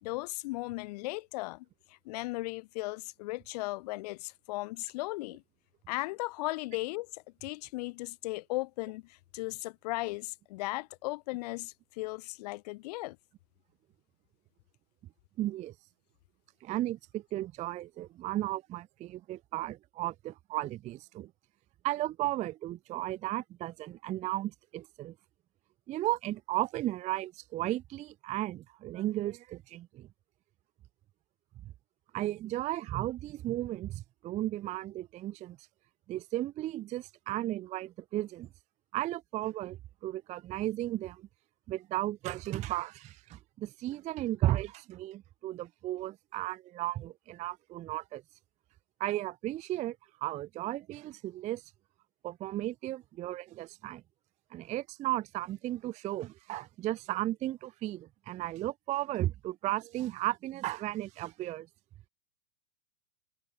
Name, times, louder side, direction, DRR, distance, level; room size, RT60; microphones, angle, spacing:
voice 1, 0.0-5.4 5.9-13.2, left 21 dB, 25° left, 0.5 m, -37 dB
voice 2, 15.4-15.7 16.6-21.3 21.8-25.1 25.9-30.1 32.1-35.6 36.1-38.5 38.9-41.3 41.7-48.2 49.0-51.6 52.2-54.0 54.5-61.7, right 15 dB, 15° right, 0.7 m, -35 dB
hypercardioid pair, 135°, 50 cm